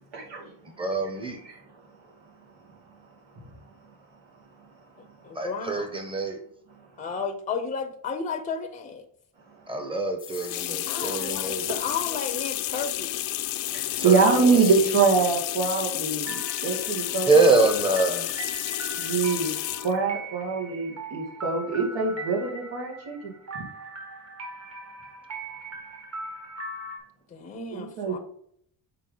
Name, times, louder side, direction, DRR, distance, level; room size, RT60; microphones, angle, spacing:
voice 1, 0.1-0.5 1.4-1.6 5.6-5.7 9.8-9.9 13.7-17.6 19.0-19.5 19.8-23.3 27.7-28.2, right 4 dB, 85° right, 2.3 m, -24 dB
voice 2, 0.8-1.4 5.3-6.4 9.7-11.7 14.0-14.7 17.2-18.3, right 3 dB, 10° right, 0.9 m, -24 dB
voice 3, 5.2-5.9 7.0-9.1 10.9-13.3 27.3-28.2, left 5 dB, 20° left, 0.5 m, -33 dB
sound 1, 10.2-20.0, left 15 dB, 85° left, 0.6 m, -31 dB
sound 2, 16.2-27.0, right 2 dB, 35° right, 1.5 m, -40 dB
6.1 x 4.6 x 3.8 m
wide cardioid pair, 170°, 44 cm